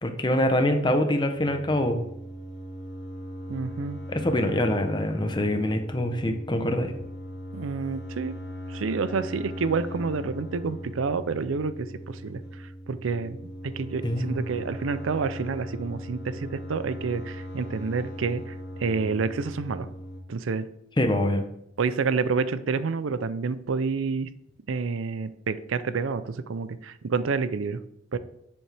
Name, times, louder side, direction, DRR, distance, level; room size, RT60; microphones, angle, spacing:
voice 1, 0.0-2.0 4.1-6.9 14.0-14.4 21.0-21.4, left 1 dB, 25° left, 6 dB, 0.8 m, -24 dB
sound 1, 1.3-20.2, equal, 70° left, 1.7 m, -39 dB
voice 2, 3.5-4.0 7.5-8.3 8.7-12.4 12.9-18.5 18.8-19.9 20.3-20.7 21.8-24.3 24.7-27.8 28.1-28.2, right 4 dB, 90° right, 13 dB, 0.5 m, -29 dB
7.7 x 7.1 x 3.4 m, 0.75 s
head